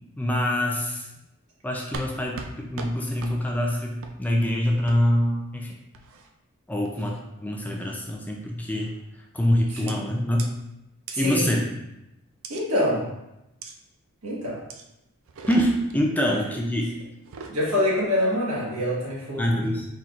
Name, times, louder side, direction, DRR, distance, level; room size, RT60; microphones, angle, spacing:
voice 1, 0.2-1.1 1.6-5.7 6.7-7.1 7.4-8.9 9.3-10.4 11.2-11.7 15.5-16.9 19.4-19.9, left 1 dB, 5° left, -1 dB, 0.4 m, -25 dB
sound 1, 1.9-2.1 2.4-2.5 2.8-2.9 3.2-3.3 4.0-4.2 4.9-5.0 5.9-6.3 6.8-7.2 7.7-8.0 8.8-9.1 9.9-10.0 10.4-10.5 11.1-11.2 12.4-12.6 13.6-13.7 14.7-14.8 15.3-16.0 17.1-17.6, right 4 dB, 65° right, 0.4 m, -39 dB
voice 2, 11.1-11.5 12.5-13.0 14.2-14.6 17.5-19.7, left 1 dB, 80° right, -5 dB, 1.4 m, -25 dB
4.4 x 4.0 x 2.4 m, 0.91 s
head